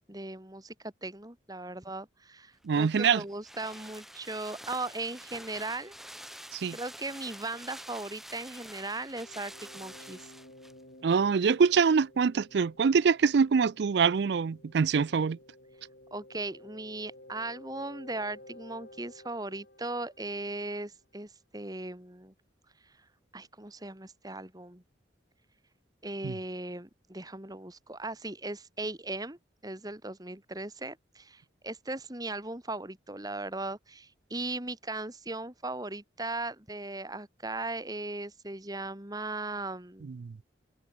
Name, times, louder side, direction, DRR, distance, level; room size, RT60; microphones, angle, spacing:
voice 1, 0.1-6.0 6.7-10.3 16.1-22.3 23.3-24.8 26.0-40.1, right 2 dB, 20° right, 2.1 m, -38 dB
sound 1, 2.6-10.8 11.1-11.2, equal, ahead, 3.8 m, -47 dB
voice 2, 2.6-3.2 6.5-6.8 11.0-15.4 26.2-26.4 40.0-40.4, right 5 dB, 60° right, 0.4 m, -25 dB
sound 2, 9.2-20.9, left 1 dB, 55° left, 7.7 m, -54 dB
head